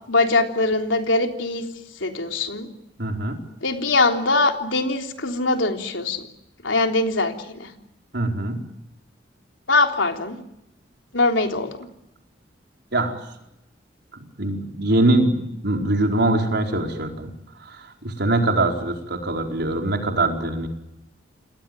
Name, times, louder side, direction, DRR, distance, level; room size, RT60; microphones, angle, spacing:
voice 1, 0.1-1.6 2.0-2.7 3.6-6.3 6.6-7.7 9.7-10.4 11.1-11.8, left 2 dB, 90° left, 4 dB, 3.6 m, -22 dB
voice 2, 3.0-3.4 8.1-8.6 12.9-13.2 14.4-17.3 17.6-20.7, right 2 dB, 60° right, 3 dB, 4.6 m, -23 dB
29.0 x 19.5 x 9.1 m, 0.84 s
head